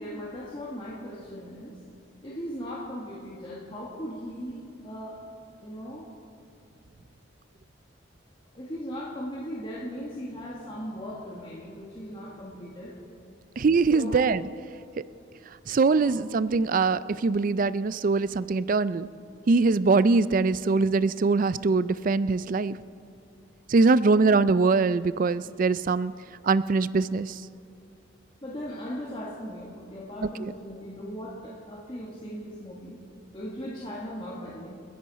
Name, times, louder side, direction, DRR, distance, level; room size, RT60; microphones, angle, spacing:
voice 1, 0.0-1.8 2.2-5.2 5.6-6.1 8.6-13.0 13.9-14.3 16.0-16.2 24.0-24.2 28.4-33.0 33.3-34.7, equal, 25° left, -5 dB, 1.8 m, -38 dB
voice 2, 13.6-14.4 15.0-15.1 15.7-19.1 19.5-22.8 23.7-26.1 26.4-27.4 30.4-30.5, right 4 dB, 45° right, 16 dB, 0.4 m, -22 dB
29.5 x 10.5 x 4.2 m, 2.7 s
head